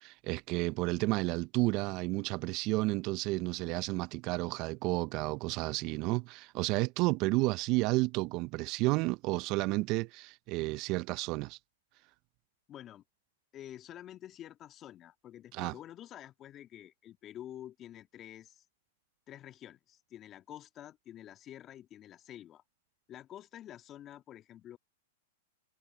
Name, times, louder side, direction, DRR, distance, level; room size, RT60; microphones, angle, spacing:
voice 1, 0.0-11.6 15.5-15.7, right 22 dB, 45° right, 0.6 m, -31 dB
voice 2, 12.7-13.0 13.5-18.6 19.3-22.6 23.1-24.8, left 11 dB, 30° left, 2.2 m, -49 dB
hypercardioid pair, 115°, 0 cm